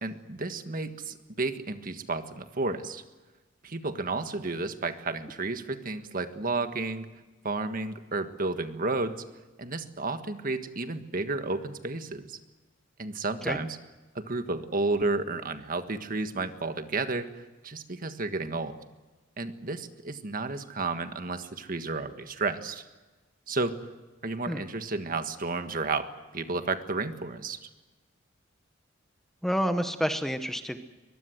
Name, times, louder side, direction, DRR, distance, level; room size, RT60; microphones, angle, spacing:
voice 1, 0.0-3.0 3.6-7.1 7.4-9.1 9.6-12.4 13.0-13.8 14.1-17.3 17.6-18.7 19.4-22.8 23.5-23.8 24.2-27.6, right 3 dB, 45° right, 8 dB, 1.6 m, -32 dB
voice 2, 29.4-30.8, equal, ahead, 8 dB, 1.0 m, -28 dB
23.5 x 21.0 x 7.9 m, 1.2 s
head